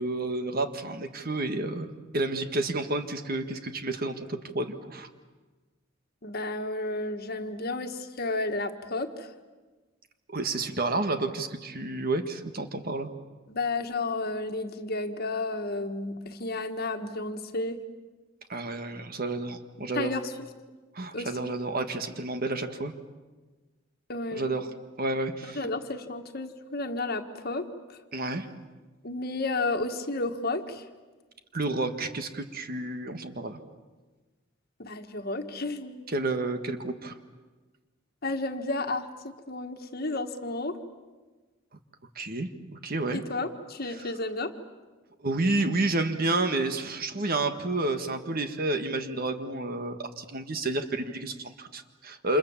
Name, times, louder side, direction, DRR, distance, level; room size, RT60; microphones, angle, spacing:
voice 1, 0.0-5.1 10.3-13.1 18.5-20.1 20.9-22.9 24.3-24.7 25.0-25.6 28.1-28.5 31.5-33.6 36.1-37.1 42.2-43.2 43.9-44.1 45.2-52.4, right 2 dB, 45° right, 8 dB, 1.6 m, -30 dB
voice 2, 6.2-9.3 13.5-17.8 19.9-20.5 21.1-21.5 24.1-24.4 25.4-28.0 29.0-30.9 34.8-36.1 38.2-40.8 43.1-44.5, left 2 dB, 45° left, 6 dB, 1.7 m, -32 dB
29.0 x 27.5 x 7.3 m, 1.3 s
head